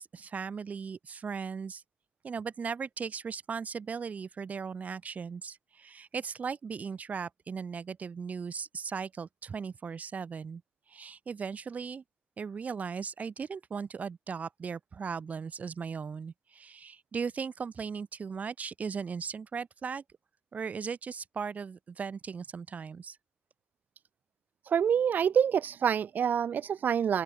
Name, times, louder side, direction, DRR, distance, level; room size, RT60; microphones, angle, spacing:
voice 1, 0.0-1.8 2.2-10.6 10.9-12.0 12.4-20.0 20.5-23.2, right 6 dB, 55° right, 7.6 m, -37 dB
voice 2, 24.7-27.2, right 8 dB, 80° right, 0.4 m, -26 dB
open air
wide cardioid pair, 140°, 3 cm